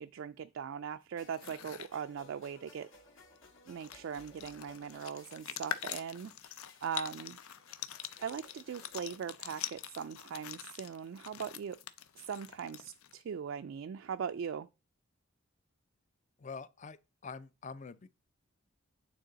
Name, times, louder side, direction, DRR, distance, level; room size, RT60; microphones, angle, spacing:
voice 1, 0.0-2.9 3.7-6.3 6.8-7.4 8.2-11.8 12.3-14.7, right 7 dB, 65° right, 0.3 m, -40 dB
sound 1, 1.2-1.9 3.4-3.5 3.7-13.2, left 10 dB, 85° left, 0.5 m, -44 dB
sound 2, 1.2-9.2, left 2 dB, 65° left, 1.9 m, -59 dB
voice 2, 16.4-18.1, left 4 dB, 35° left, 0.4 m, -46 dB
9.0 x 3.8 x 3.9 m
head